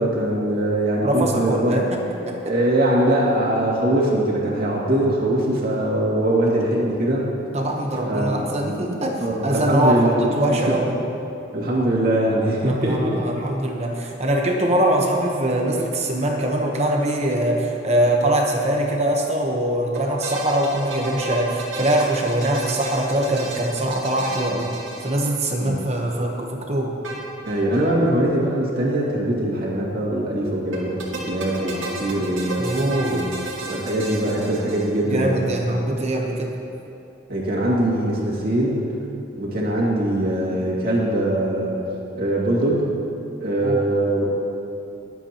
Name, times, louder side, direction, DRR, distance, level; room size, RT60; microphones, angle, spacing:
voice 1, 0.0-1.8 2.4-7.2 8.1-8.5 9.2-10.3 10.7-10.8 11.5-13.2 25.6-25.8 27.4-32.7 33.0-33.3 33.6-35.5 37.3-38.8 39.4-41.8 42.1-42.9 43.4-44.4, right 1 dB, 50° right, -5 dB, 2.3 m, -22 dB
voice 2, 1.0-2.0 2.3-2.5 6.5-6.6 7.5-10.9 12.6-24.7 25.0-27.0 32.6-33.2 35.1-36.5 43.6-43.8, right 1 dB, 35° right, 1 dB, 1.0 m, -22 dB
sound 1, 19.9-25.7 27.0-27.9 28.1-28.2 28.4-28.5 30.7-35.2, right 2 dB, 80° right, 2.2 m, -33 dB
22.0 x 8.1 x 3.0 m, 2.8 s
head